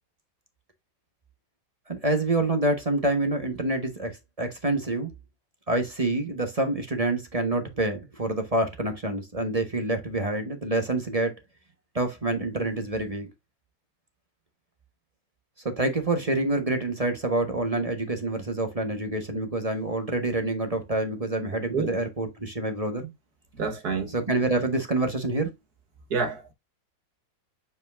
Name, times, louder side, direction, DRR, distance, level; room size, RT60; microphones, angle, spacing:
voice 1, 1.9-4.1 4.4-5.1 5.7-11.3 11.9-13.3 15.6-23.1 24.1-25.5, right 2 dB, 25° right, 1.0 m, -27 dB
voice 2, 23.6-24.1 26.1-26.5, right 5 dB, 55° right, 1.8 m, -28 dB
7.3 x 5.5 x 2.5 m
omnidirectional pair, 2.0 m